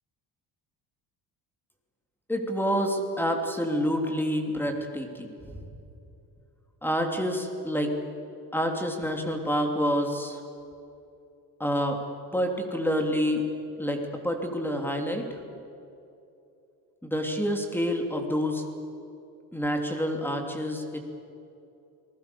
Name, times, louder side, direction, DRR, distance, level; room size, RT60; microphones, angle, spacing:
voice 1, 2.3-5.7 6.8-8.0 8.5-10.4 11.6-12.0 12.3-13.4 13.8-15.3 17.0-18.6 19.5-21.0, equal, 5° left, 4 dB, 3.0 m, -28 dB
29.5 x 19.5 x 7.0 m, 2.7 s
cardioid pair, 130°, 39 cm